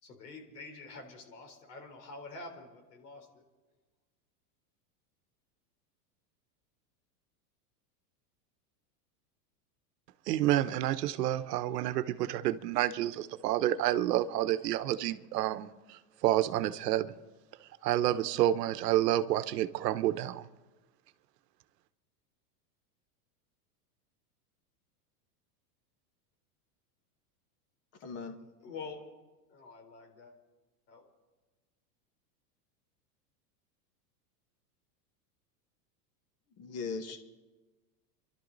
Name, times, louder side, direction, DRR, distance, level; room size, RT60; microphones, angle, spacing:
voice 1, 0.0-3.4 28.6-29.0 29.5-30.3 30.9-31.1, left 3 dB, 80° left, 3.8 m, -47 dB
voice 2, 10.3-17.1 17.8-20.5, right 13 dB, 80° right, 1.0 m, -29 dB
voice 3, 28.0-28.3 36.6-37.2, left 4 dB, 30° left, 1.7 m, -38 dB
27.5 x 12.0 x 4.0 m
supercardioid pair, 145°, 48 cm